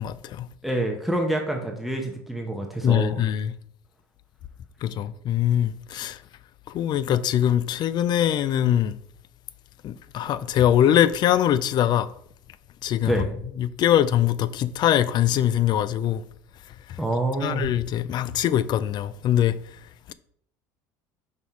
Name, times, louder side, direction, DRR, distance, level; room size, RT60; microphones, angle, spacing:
voice 1, 0.0-0.5 2.8-3.5 4.8-6.2 6.7-8.9 9.8-12.1 12.8-13.2 13.6-16.2 17.4-19.6, left 10 dB, 50° left, 0.5 m, -22 dB
voice 2, 0.6-3.2 13.0-13.4 17.0-17.7, right 1 dB, ahead, 1.0 m, -27 dB
5.4 x 4.3 x 4.6 m
supercardioid pair, 85°, 9 cm